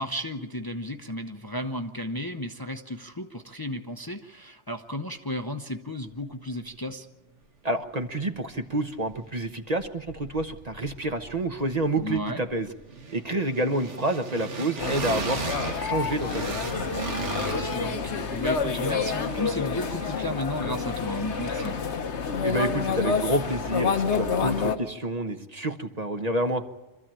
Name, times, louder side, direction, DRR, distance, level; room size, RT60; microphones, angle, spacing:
voice 1, 0.0-7.1 12.0-12.4 17.2-21.8, left 1 dB, 20° left, 5 dB, 0.8 m, -34 dB
voice 2, 7.6-12.7 13.1-16.5 22.4-26.6, right 1 dB, 35° right, 7 dB, 1.1 m, -28 dB
sound 1, 8.5-9.5 9.8-22.0, right 4 dB, 90° right, 1.9 m, -38 dB
sound 2, 14.8-24.8, left 5 dB, 75° left, 1.5 m, -28 dB
25.5 x 14.0 x 8.9 m, 1.0 s
omnidirectional pair, 1.2 m